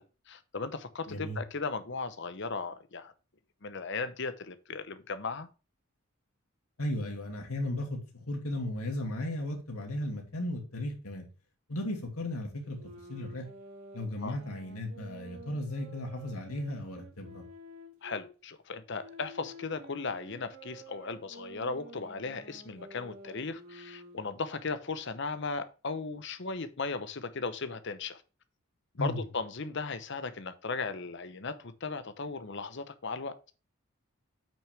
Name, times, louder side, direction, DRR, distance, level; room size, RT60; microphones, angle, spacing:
voice 1, 0.0-3.1 3.6-5.5 14.2-14.4 18.0-28.2 29.0-33.3, left 4 dB, 55° left, 0.9 m, -37 dB
voice 2, 1.1-1.4 6.8-11.2 11.7-12.8 13.1-13.5 13.9-17.4 29.0-29.2, left 1 dB, 85° left, 2.6 m, -35 dB
sound 1, 12.6-18.3 19.0-24.4, right 1 dB, 75° right, 2.9 m, -50 dB
8.6 x 6.1 x 3.4 m
head